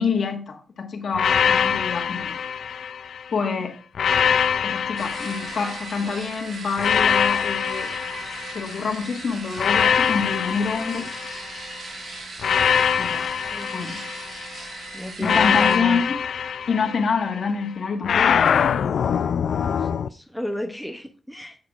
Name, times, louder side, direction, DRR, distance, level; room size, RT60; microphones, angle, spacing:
voice 1, 0.0-2.4 3.3-3.7 4.6-8.2 8.5-11.1 13.0-13.3 13.7-14.0 15.2-16.1 16.7-18.4, left 5 dB, 55° left, 1.4 m, -26 dB
sound 1, 1.1-3.3 3.9-6.1 6.8-8.9 9.6-11.7 12.4-14.6 15.2-17.4 18.0-20.1, left 7 dB, 70° left, 0.3 m, -23 dB
sound 2, 5.0-15.8, right 3 dB, 55° right, 1.5 m, -38 dB
voice 2, 14.9-16.0 19.7-21.6, left 1 dB, ahead, 0.6 m, -32 dB
10.0 x 7.9 x 2.4 m
wide cardioid pair, 175°, 0 cm